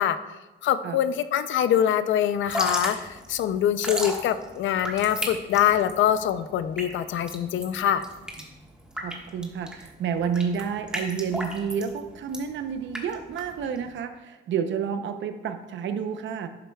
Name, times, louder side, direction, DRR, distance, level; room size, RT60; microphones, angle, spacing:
voice 1, 0.0-8.0, left 10 dB, 75° left, 12 dB, 0.5 m, -24 dB
Drip / Trickle dribble, 2.3-13.9, right 1 dB, 5° right, 1.5 m, -35 dB
voice 2, 9.0-16.5, right 7 dB, 70° right, 8 dB, 0.7 m, -30 dB
11.0 x 7.7 x 2.3 m, 1.1 s
cardioid pair, 90°, 20 cm